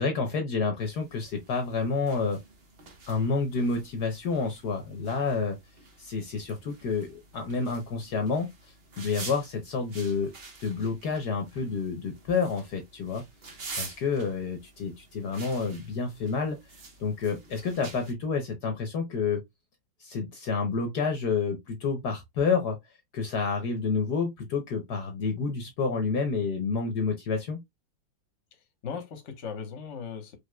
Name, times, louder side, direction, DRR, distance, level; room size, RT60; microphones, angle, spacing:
voice 1, 0.0-2.4 3.1-5.6 6.0-8.5 9.0-10.3 10.6-13.2 13.7-16.6 17.0-19.4 20.0-22.8 23.1-27.6, left 4 dB, 60° left, 1.4 m, -29 dB
sound 1, 0.8-18.1, right 3 dB, 35° right, 1.2 m, -47 dB
voice 2, 28.5-30.4, left 6 dB, 45° left, 1.3 m, -38 dB
5.2 x 3.4 x 2.2 m
omnidirectional pair, 2.1 m